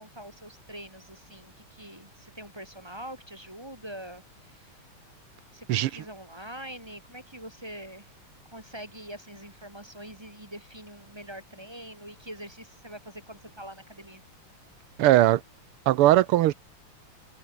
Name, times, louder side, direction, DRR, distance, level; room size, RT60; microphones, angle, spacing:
voice 1, 0.0-4.7 5.5-8.1 8.5-14.2, right 1 dB, 10° right, 2.7 m, -44 dB
voice 2, 15.0-15.4 15.9-16.5, right 14 dB, 85° right, 1.7 m, -19 dB
open air
omnidirectional pair, 2.4 m